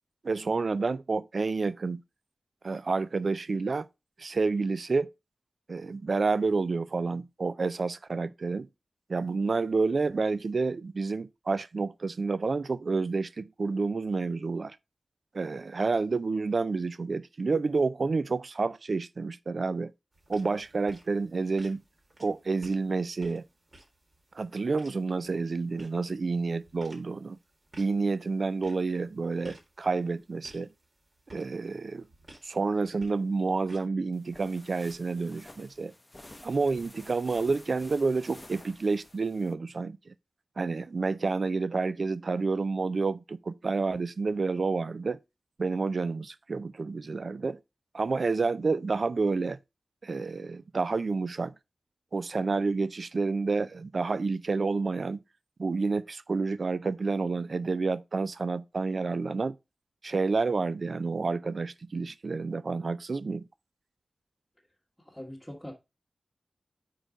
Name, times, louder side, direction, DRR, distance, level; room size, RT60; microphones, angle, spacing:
voice 1, 0.2-2.0 2.6-3.9 4.2-5.1 5.7-8.7 9.1-14.8 15.3-19.9 20.3-21.8 22.2-23.4 24.3-27.4 27.8-30.7 31.3-32.1 32.4-35.9 36.4-40.1 40.6-45.2 45.6-47.6 47.9-49.6 50.0-51.5 52.1-55.2 55.6-59.6 60.0-63.4, right 4 dB, 60° right, 0.3 m, -29 dB
sound 1, 20.1-33.8, right 1 dB, 45° right, 1.9 m, -56 dB
sound 2, 34.1-39.5, left 1 dB, 20° left, 0.7 m, -51 dB
voice 2, 65.0-65.7, equal, 5° left, 1.5 m, -42 dB
4.6 x 4.5 x 4.9 m
wide cardioid pair, 75°, 0 cm